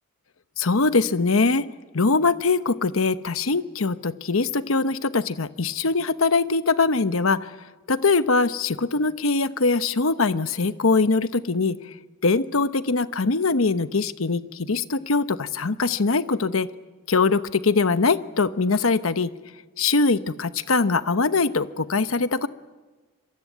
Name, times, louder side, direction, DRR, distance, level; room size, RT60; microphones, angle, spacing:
voice 1, 0.6-1.7 1.9-7.5 7.9-11.8 12.2-16.7 17.1-19.3 19.8-22.5, left 4 dB, 80° left, 12 dB, 1.0 m, -22 dB
26.0 x 23.0 x 9.3 m, 1.3 s
head